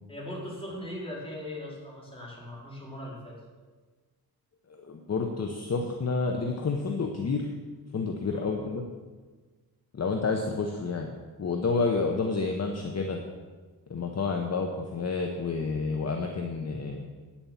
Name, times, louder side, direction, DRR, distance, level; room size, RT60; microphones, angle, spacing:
voice 1, 0.1-3.3 8.3-8.7, left 1 dB, 15° left, -6 dB, 4.1 m, -39 dB
voice 2, 4.7-7.5 7.9-8.8 9.9-11.1 11.4-13.2 13.9-17.1, left 4 dB, 45° left, 3 dB, 0.9 m, -29 dB
9.5 x 7.2 x 7.2 m, 1.4 s
wide cardioid pair, 115°, 37 cm